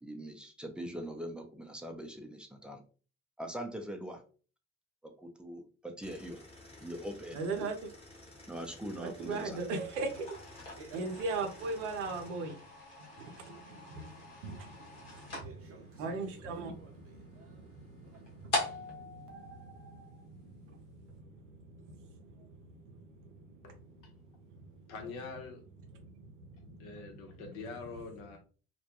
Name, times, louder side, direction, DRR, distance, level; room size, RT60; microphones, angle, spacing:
voice 1, 0.0-2.8 3.4-4.2 5.0-6.4 6.8-7.4 8.5-9.6, equal, 5° right, 3 dB, 0.5 m, -42 dB
sound 1, 6.0-12.3, left 2 dB, 15° left, 0.9 m, -54 dB
voice 2, 7.3-7.9 9.0-12.6 13.1-25.0 25.9-27.4, right 3 dB, 80° right, 5 dB, 0.6 m, -41 dB
sound 2, 10.0-20.4, left 2 dB, 90° left, 0.9 m, -43 dB
sound 3, 10.3-11.6 15.3-18.5 19.3-20.2, right 5 dB, 40° right, 0.7 m, -56 dB
voice 3, 24.9-25.6 26.8-28.4, left 4 dB, 65° left, 3 dB, 0.8 m, -44 dB
2.2 x 2.2 x 2.9 m, 0.38 s
hypercardioid pair, 55°, 35 cm